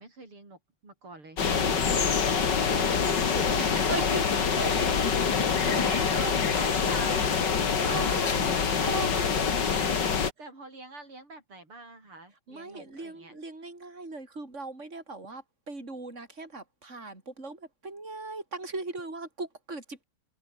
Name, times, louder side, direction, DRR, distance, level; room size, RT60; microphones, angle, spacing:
voice 1, 0.0-3.6 4.0-4.2 4.5-5.1 5.6-7.4 7.6-13.3, right 2 dB, 80° right, 8.6 m, -43 dB
sound 1, 1.4-10.3, left 6 dB, 55° left, 2.7 m, -25 dB
voice 2, 1.6-2.0 3.6-4.4 5.6-5.7 7.1-7.2 7.9-8.5 8.8-9.2 12.5-20.0, right 3 dB, 30° right, 6.0 m, -38 dB
omnidirectional pair, 2.3 m